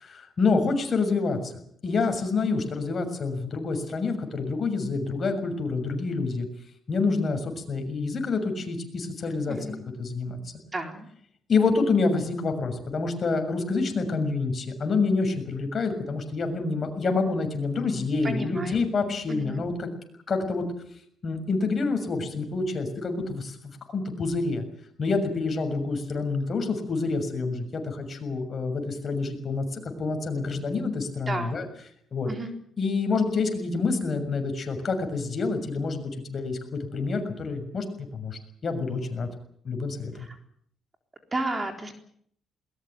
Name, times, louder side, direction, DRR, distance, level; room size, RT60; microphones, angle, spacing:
voice 1, 0.0-1.5 1.8-6.5 6.9-9.6 10.0-10.4 11.5-19.9 20.3-20.6 21.2-23.6 23.9-24.6 25.0-31.7 32.1-32.3 32.8-36.0 36.3-37.8 38.1-39.3 39.6-40.3, left 4 dB, 45° left, 6 dB, 6.7 m, -27 dB
voice 2, 9.5-9.8 10.7-11.1 18.2-18.9 19.3-19.6 31.3-31.6 32.3-32.5 41.3-41.9, right 2 dB, 25° right, 5 dB, 3.9 m, -32 dB
21.5 x 20.0 x 9.6 m, 0.67 s
cardioid pair, 90°, 0 cm